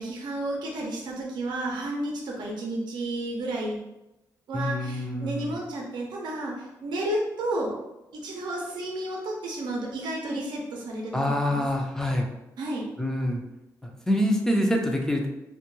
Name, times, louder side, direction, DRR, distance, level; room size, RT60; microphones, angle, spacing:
voice 1, 0.0-3.8 4.5-7.7 8.1-11.6 12.6-12.9, right 1 dB, 75° right, -1 dB, 0.5 m, -32 dB
voice 2, 4.5-5.6 11.1-12.3 13.0-13.4 13.8-15.3, left 1 dB, 5° left, 1 dB, 0.4 m, -26 dB
2.2 x 2.1 x 3.0 m, 0.93 s
cardioid pair, 85°, 8 cm